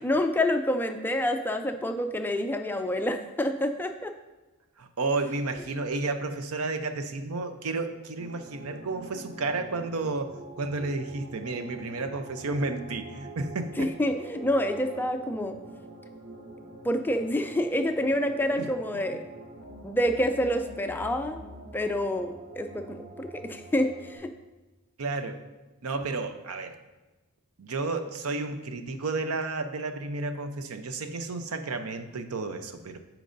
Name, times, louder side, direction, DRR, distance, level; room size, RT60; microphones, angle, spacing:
voice 1, 0.0-4.1 13.8-15.6 16.8-19.2 19.8-21.4 21.7-24.3, left 1 dB, 10° left, 6 dB, 0.3 m, -27 dB
voice 2, 4.8-13.9 18.6-18.7 25.0-25.4 25.8-26.8 27.6-33.0, right 3 dB, 85° right, 8 dB, 0.6 m, -32 dB
sound 1, 8.2-24.2, right 2 dB, 45° right, 2.0 m, -45 dB
13.5 x 4.6 x 2.6 m, 1.1 s
head